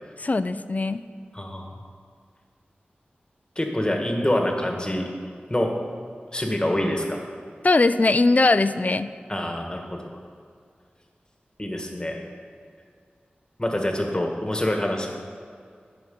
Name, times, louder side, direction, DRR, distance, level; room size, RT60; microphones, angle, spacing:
voice 1, 0.2-1.0 7.6-9.1, left 3 dB, 45° left, 13 dB, 0.4 m, -20 dB
voice 2, 1.3-1.8 3.5-5.1 5.5-5.7 6.3-7.2 9.3-10.0 11.6-12.2 13.6-15.1, left 1 dB, 25° left, 2 dB, 1.7 m, -26 dB
9.3 x 6.1 x 7.7 m, 2.2 s
cardioid pair, 50°, 4 cm